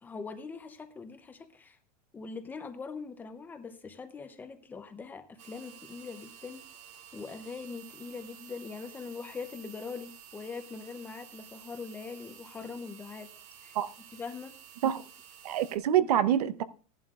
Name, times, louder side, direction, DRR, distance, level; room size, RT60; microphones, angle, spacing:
voice 1, 0.0-1.8 2.1-6.6 7.1-13.3 13.6-13.7 14.1-14.5, left 5 dB, 10° left, 8 dB, 0.7 m, -42 dB
sound 1, 5.4-15.8, right 9 dB, 55° right, 2.1 m, -52 dB
voice 2, 15.4-16.6, right 10 dB, 85° right, 14 dB, 0.9 m, -26 dB
16.5 x 11.0 x 2.4 m, 0.39 s
supercardioid pair, 175°, 19 cm